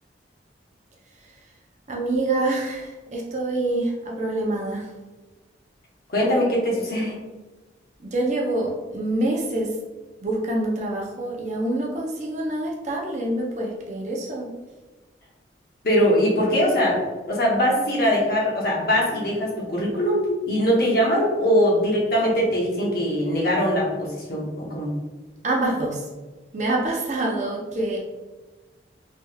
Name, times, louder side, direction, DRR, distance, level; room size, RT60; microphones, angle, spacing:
voice 1, 1.9-4.9 8.0-9.7 10.2-14.5 25.4-26.0 26.5-28.0, right 2 dB, 40° right, -2 dB, 0.5 m, -26 dB
voice 2, 6.1-7.2 15.8-17.0 17.3-24.9, equal, 55° left, -3 dB, 0.8 m, -21 dB
3.3 x 3.0 x 2.3 m, 1.2 s
head